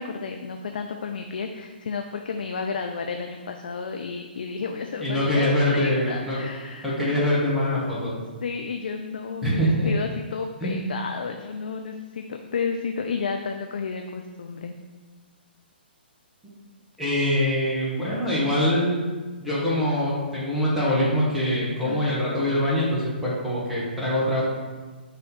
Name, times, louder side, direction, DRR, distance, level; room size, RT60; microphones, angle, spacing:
voice 1, 0.0-7.2 8.0-14.7 21.9-22.0, left 5 dB, 55° left, 4 dB, 0.4 m, -32 dB
voice 2, 5.0-6.4 6.8-8.1 9.4-9.9 10.6-10.8 17.0-19.0 19.4-24.4, left 1 dB, ahead, -9 dB, 1.3 m, -24 dB
5.6 x 3.1 x 5.4 m, 1.4 s
figure-of-eight pair, 125°, 6 cm